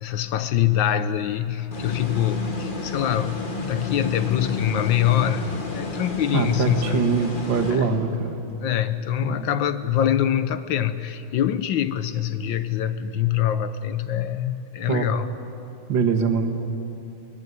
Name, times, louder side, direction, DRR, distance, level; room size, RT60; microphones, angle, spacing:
voice 1, 0.0-7.1 7.7-8.0 8.6-15.3, left 10 dB, 70° left, 12 dB, 1.4 m, -24 dB
sound 1, 1.7-8.3, left 3 dB, 25° left, 1.7 m, -31 dB
voice 2, 6.3-8.4 9.2-9.5 14.9-15.1 15.9-16.5, right 5 dB, 65° right, 4 dB, 2.2 m, -23 dB
23.0 x 18.5 x 9.6 m, 2.8 s
omnidirectional pair, 2.2 m